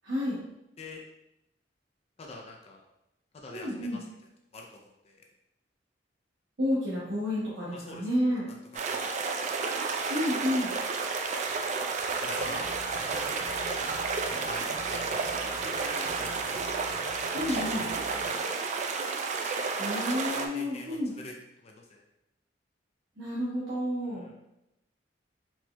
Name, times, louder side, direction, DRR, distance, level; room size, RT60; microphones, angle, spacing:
voice 1, 0.0-0.4 3.5-4.0 6.6-8.5 10.1-10.7 17.3-17.8 19.8-21.1 23.2-24.3, left 1 dB, 75° right, -8 dB, 0.8 m, -30 dB
voice 2, 2.2-2.8 3.3-4.1 4.5-5.2 7.7-8.1 8.5-8.6 8.9-9.1 9.5-9.7 11.9-13.3 14.4-15.6 16.2-16.6 17.5-18.6 20.1-21.3 21.6-22.0 24.1-24.3, left 2 dB, 35° left, 1 dB, 0.4 m, -45 dB
sound 1, 8.7-20.5, right 4 dB, 40° right, 0.3 m, -31 dB
sound 2, 12.4-18.4, left 1 dB, 90° left, 0.6 m, -47 dB
4.2 x 2.9 x 2.2 m, 0.89 s
head